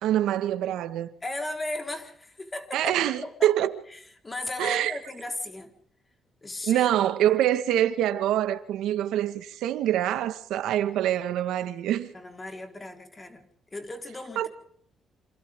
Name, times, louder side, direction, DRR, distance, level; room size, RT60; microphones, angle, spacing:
voice 1, 0.0-1.1 2.7-3.7 4.6-5.0 6.7-12.1 14.4-14.5, right 12 dB, 85° right, 1.6 m, -25 dB
voice 2, 1.2-5.7 6.4-6.9 12.1-14.5, left 2 dB, 20° left, 4.5 m, -36 dB
27.5 x 26.5 x 3.8 m
cardioid pair, 90°, 0 cm